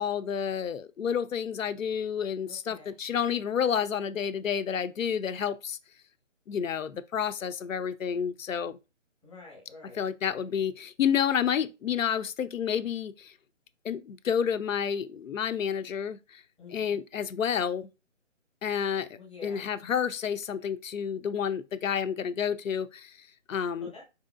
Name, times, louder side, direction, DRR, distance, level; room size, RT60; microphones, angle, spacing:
voice 1, 0.0-5.8 6.5-8.8 9.9-13.3 13.8-16.4 16.7-17.9 18.6-19.1 19.4-23.9, left 8 dB, 85° left, 0.5 m, -30 dB
voice 2, 2.5-3.0 9.2-10.0 16.6-17.0 19.1-19.7 23.8-24.0, left 3 dB, 5° left, 0.7 m, -48 dB
4.6 x 2.8 x 2.4 m
figure-of-eight pair, 160°, 38 cm